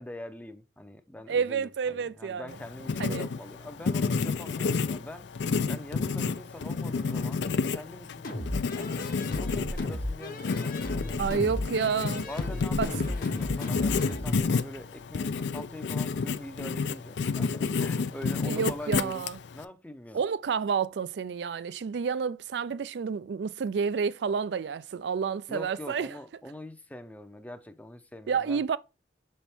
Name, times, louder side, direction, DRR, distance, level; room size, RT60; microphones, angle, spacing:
voice 1, 0.0-5.3 5.7-8.3 8.7-11.5 12.3-19.3 19.5-20.2 25.5-28.6, left 1 dB, 10° left, 0.6 m, -44 dB
voice 2, 1.3-2.5 3.0-3.3 11.2-12.3 12.8-12.9 18.4-19.4 20.1-26.1 28.3-28.8, right 6 dB, 65° right, 0.4 m, -29 dB
Writing, 2.5-19.6, left 4 dB, 75° left, 0.4 m, -30 dB
sound 1, 8.2-14.4, left 1 dB, 55° left, 1.1 m, -35 dB
7.0 x 4.3 x 3.4 m
head